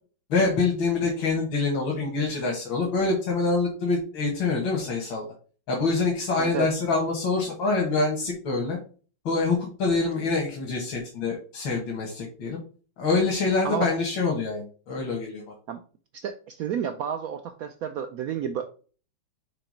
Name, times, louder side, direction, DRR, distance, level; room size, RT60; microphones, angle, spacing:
voice 1, 0.3-5.3 5.7-8.8 9.3-12.6 13.0-15.4, left 3 dB, 90° left, -1 dB, 2.1 m, -25 dB
voice 2, 6.4-6.7 13.6-13.9 15.7-15.8 16.1-18.7, right 8 dB, 80° right, 8 dB, 0.8 m, -31 dB
5.9 x 3.2 x 5.0 m, 0.39 s
omnidirectional pair, 2.1 m